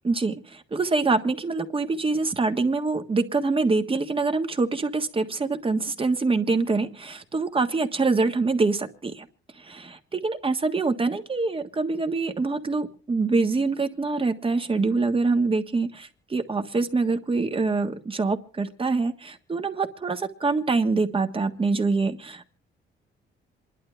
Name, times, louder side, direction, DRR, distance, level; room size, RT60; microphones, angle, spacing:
voice 1, 0.0-0.4 0.7-9.3 9.7-22.5, right 3 dB, 25° right, 1.5 m, -25 dB
27.5 x 11.5 x 3.3 m
cardioid pair, 90°, 20 cm